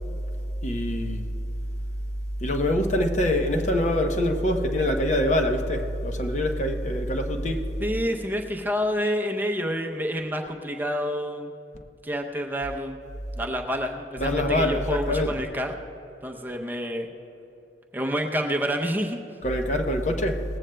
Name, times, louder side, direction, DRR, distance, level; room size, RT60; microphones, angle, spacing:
voice 1, 0.6-1.3 2.4-7.7 14.2-15.3 19.4-20.4, left 1 dB, 40° left, 4 dB, 0.8 m, -24 dB
voice 2, 7.8-11.5 12.0-13.0 13.4-15.7 16.2-17.1 17.9-19.2, equal, 10° right, 2 dB, 0.6 m, -28 dB
18.5 x 15.0 x 2.2 m, 2.8 s
head